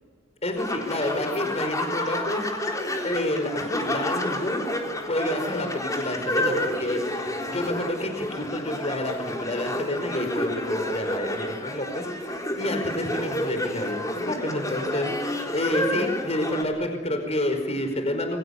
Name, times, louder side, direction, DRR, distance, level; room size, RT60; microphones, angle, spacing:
voice 1, 0.4-2.7 3.0-4.6 5.0-18.4, left 1 dB, 35° left, 6 dB, 5.1 m, -29 dB
sound 1, 0.6-16.6, left 1 dB, 20° left, 4.1 m, -30 dB
28.5 x 23.0 x 8.4 m, 1.4 s
head